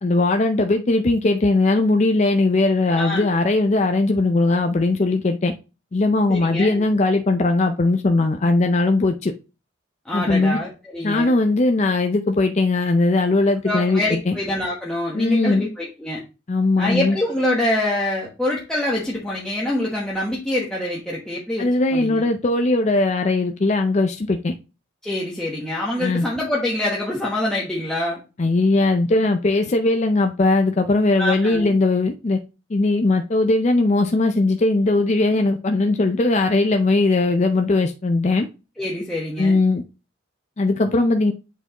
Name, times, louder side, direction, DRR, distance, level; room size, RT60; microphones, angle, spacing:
voice 1, 0.0-5.5 5.9-9.3 10.1-10.6 11.0-14.4 15.1-15.6 16.5-17.2 21.6-24.5 26.0-26.2 28.4-32.4 32.7-38.5 39.4-39.8 40.6-41.3, left 2 dB, 35° left, 5 dB, 0.4 m, -19 dB
voice 2, 2.9-3.3 6.3-6.8 10.0-11.3 13.6-16.2 16.8-22.2 25.0-28.2 31.2-31.7 38.8-39.6, left 1 dB, 5° left, -5 dB, 1.1 m, -25 dB
8.0 x 4.6 x 2.9 m, 0.30 s
head